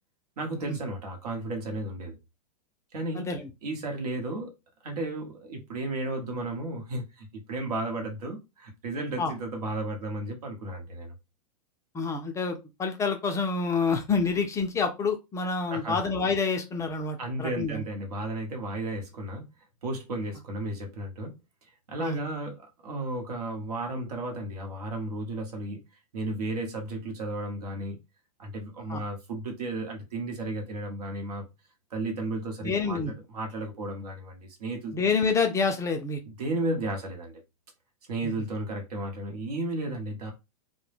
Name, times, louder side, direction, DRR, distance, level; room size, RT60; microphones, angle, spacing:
voice 1, 0.4-2.2 2.9-3.3 3.6-4.5 4.8-11.1 15.7-16.0 17.2-19.4 19.8-21.4 21.6-25.8 26.1-28.0 28.4-31.4 31.9-34.9 36.4-37.4 38.1-40.3, right 2 dB, 75° right, 0.9 m, -33 dB
voice 2, 3.1-3.5 9.2-9.3 11.9-17.8 22.0-22.2 28.9-29.0 32.6-33.1 34.9-36.2 38.2-38.3, left 4 dB, 15° left, 0.4 m, -28 dB
2.1 x 2.1 x 3.2 m
hypercardioid pair, 120°, 20 cm